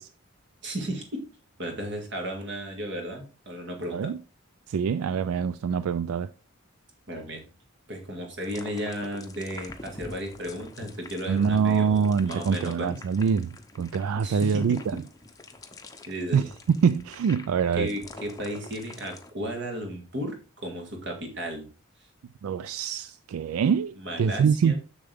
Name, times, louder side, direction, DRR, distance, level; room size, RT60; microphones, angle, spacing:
voice 1, 0.6-1.2 1.6-4.1 7.1-7.4 7.9-13.0 14.2-14.8 16.1-16.5 17.8-21.7 24.0-24.8, equal, 55° right, 2.0 m, -34 dB
voice 2, 4.7-6.3 11.3-14.8 16.3-16.4 16.8-17.9 22.4-24.7, right 6 dB, 85° right, 0.3 m, -25 dB
sound 1, 8.4-19.3, left 2 dB, 15° left, 0.7 m, -45 dB
6.9 x 6.7 x 3.5 m
head